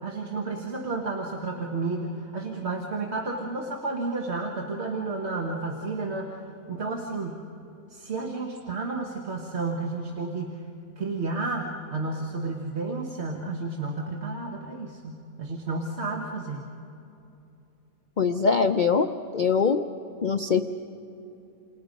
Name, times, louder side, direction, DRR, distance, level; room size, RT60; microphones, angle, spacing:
voice 1, 0.0-6.4 6.7-7.4 7.9-10.6 11.0-16.7, right 3 dB, 45° right, 1 dB, 1.7 m, -31 dB
voice 2, 18.2-19.1 19.3-19.8 20.2-20.6, left 5 dB, 55° left, 7 dB, 0.5 m, -22 dB
28.5 x 28.5 x 5.3 m, 2.9 s
omnidirectional pair, 1.6 m